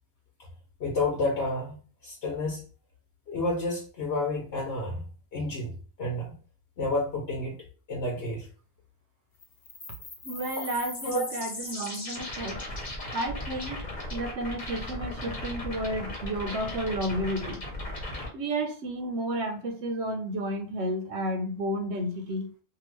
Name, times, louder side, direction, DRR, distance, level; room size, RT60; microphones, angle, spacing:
voice 1, 0.8-1.8 2.0-2.6 3.3-5.0 5.3-5.7 6.0-6.4 6.8-8.5 10.6-10.7 11.0-11.3, left 2 dB, 75° left, -2 dB, 1.1 m, -30 dB
sound 1, 9.4-18.3, left 1 dB, 45° left, 1.0 m, -37 dB
voice 2, 10.2-12.6 13.1-17.6 18.3-22.5, right 1 dB, 85° right, 5 dB, 1.0 m, -32 dB
2.8 x 2.5 x 3.0 m, 0.38 s
omnidirectional pair, 1.1 m